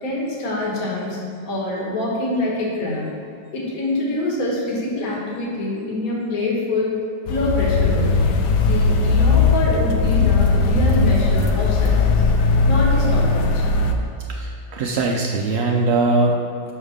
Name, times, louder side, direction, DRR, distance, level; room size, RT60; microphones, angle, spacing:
voice 1, 0.0-3.1 3.5-6.9 7.3-8.2 8.6-12.3 12.6-13.6, left 2 dB, 60° left, -4 dB, 1.8 m, -25 dB
sound 1, 7.3-13.9, left 4 dB, 85° left, 1.3 m, -18 dB
voice 2, 14.3-16.7, right 3 dB, 70° right, 0 dB, 0.6 m, -21 dB
5.4 x 5.4 x 6.4 m, 2.5 s
omnidirectional pair, 1.8 m